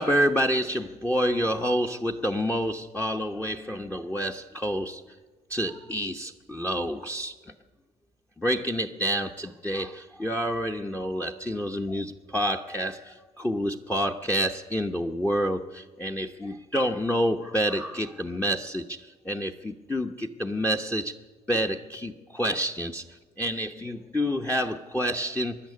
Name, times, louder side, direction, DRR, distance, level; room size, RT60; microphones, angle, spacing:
voice 1, 0.0-5.0 5.5-7.5 8.4-21.1 21.5-25.6, equal, 10° left, 3 dB, 0.9 m, -28 dB
25.0 x 11.5 x 9.7 m, 1.3 s
cardioid pair, 110°, 17 cm